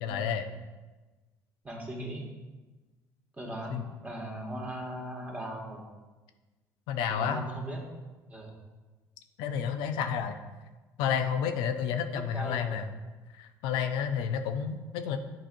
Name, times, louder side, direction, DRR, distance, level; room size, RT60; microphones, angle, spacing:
voice 1, 0.0-0.5 3.7-3.8 6.9-7.4 9.4-10.4 11.0-12.9 13.4-15.2, left 7 dB, 80° left, 7 dB, 0.5 m, -30 dB
voice 2, 1.6-2.3 3.4-5.8 7.1-7.8 8.3-8.5 12.1-12.8, right 1 dB, 20° right, -1 dB, 1.8 m, -38 dB
9.0 x 4.2 x 2.6 m, 1.2 s
supercardioid pair, 75°, 8 cm